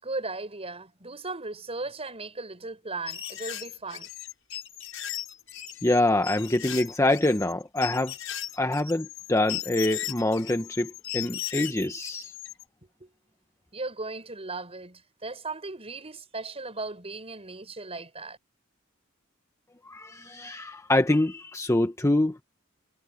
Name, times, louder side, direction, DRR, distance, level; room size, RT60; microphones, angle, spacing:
voice 1, 0.0-4.1 13.0-13.1 13.7-18.4, right 3 dB, 30° right, 5.9 m, -37 dB
sound 1, 3.1-12.6, left 12 dB, 80° left, 6.4 m, -37 dB
voice 2, 5.8-8.1 8.6-12.3 19.9-22.4, left 1 dB, 15° left, 1.0 m, -25 dB
head